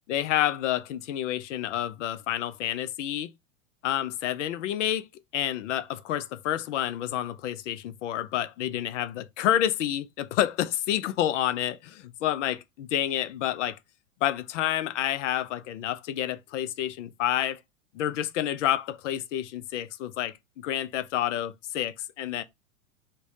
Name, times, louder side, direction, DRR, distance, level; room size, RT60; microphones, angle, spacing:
voice 1, 0.1-3.3 3.8-5.0 5.3-13.8 14.2-17.6 17.9-22.4, left 12 dB, 60° left, 0.5 m, -29 dB
3.3 x 2.1 x 4.0 m
hypercardioid pair, 105°, 41 cm